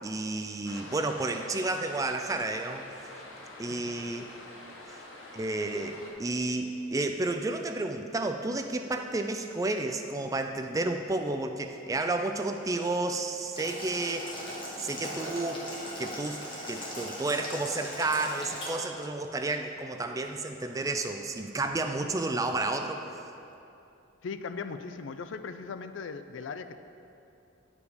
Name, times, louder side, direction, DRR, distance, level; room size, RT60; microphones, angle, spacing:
voice 1, 0.0-2.9 3.6-4.2 4.9-5.0 5.3-14.3 14.8-15.7 16.0-16.4 16.7-23.2, right 2 dB, 15° right, 5 dB, 0.3 m, -31 dB
sound 1, 0.6-6.1, left 1 dB, 90° left, 1.2 m, -47 dB
voice 2, 3.8-4.3 24.2-26.8, left 5 dB, 65° left, 10 dB, 0.4 m, -39 dB
Boiling, 13.5-18.7, equal, 25° left, 1.5 m, -39 dB
9.5 x 5.0 x 5.1 m, 2.8 s
head